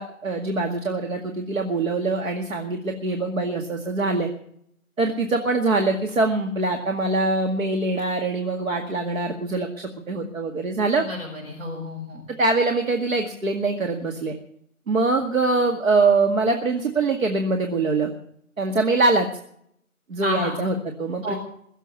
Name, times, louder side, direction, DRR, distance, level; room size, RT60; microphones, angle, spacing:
voice 1, 0.0-4.3 5.0-11.0 12.4-14.3 14.9-18.1 18.6-19.3 20.1-21.3, right 3 dB, 65° right, 3 dB, 2.1 m, -23 dB
voice 2, 11.0-12.2 20.2-20.6 21.2-21.4, equal, 40° right, -4 dB, 6.1 m, -30 dB
22.0 x 7.3 x 8.4 m, 0.69 s
figure-of-eight pair, 165°, 43 cm